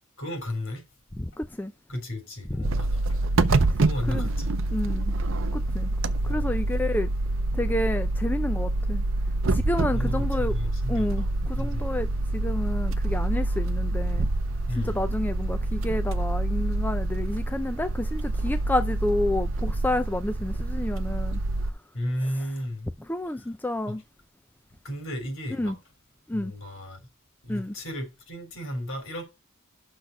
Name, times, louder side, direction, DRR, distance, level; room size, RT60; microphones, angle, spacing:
voice 1, 0.2-0.8 1.9-3.2 3.8-4.5 6.1-6.8 9.9-11.9 14.7-15.1 21.9-22.9 23.3-23.5 24.8-25.8 26.3-27.0 27.4-29.2, left 1 dB, 70° left, 4.0 m, -34 dB
voice 2, 1.2-1.7 2.6-2.7 4.1-4.3 4.7-5.1 5.5-5.9 6.2-7.1 7.5-9.0 9.5-10.5 10.9-14.3 14.8-21.4 23.1-24.0 25.6-25.8 26.3-26.5 27.5-27.7, left 1 dB, 10° left, 0.4 m, -30 dB
sound 1, 2.6-21.7, right 2 dB, 65° right, 0.6 m, -26 dB
6.4 x 6.1 x 6.7 m
head